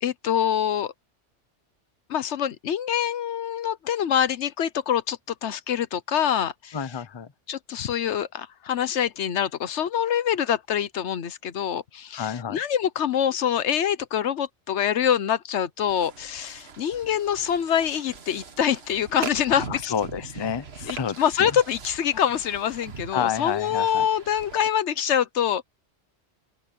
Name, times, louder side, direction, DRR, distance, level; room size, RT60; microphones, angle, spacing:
voice 1, 0.0-0.9 2.1-6.8 7.5-19.9 20.9-25.6, left 9 dB, 75° left, 1.1 m, -25 dB
voice 2, 6.7-7.3 12.1-12.6 19.5-21.6 23.1-24.1, left 8 dB, 30° left, 0.6 m, -30 dB
sound 1, 15.8-24.7, right 5 dB, 60° right, 1.6 m, -41 dB
open air
omnidirectional pair, 1.2 m